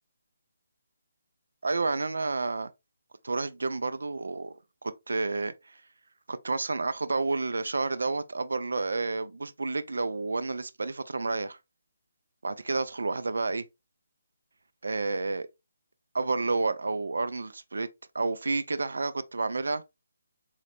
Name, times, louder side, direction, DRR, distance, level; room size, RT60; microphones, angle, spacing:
voice 1, 1.6-2.7 3.2-4.5 4.8-5.8 6.3-11.6 12.4-13.7 14.8-15.5 16.1-17.9 18.1-19.8, right 3 dB, 80° right, 0.4 m, -30 dB
3.9 x 2.0 x 2.9 m
hypercardioid pair, 160°, 0 cm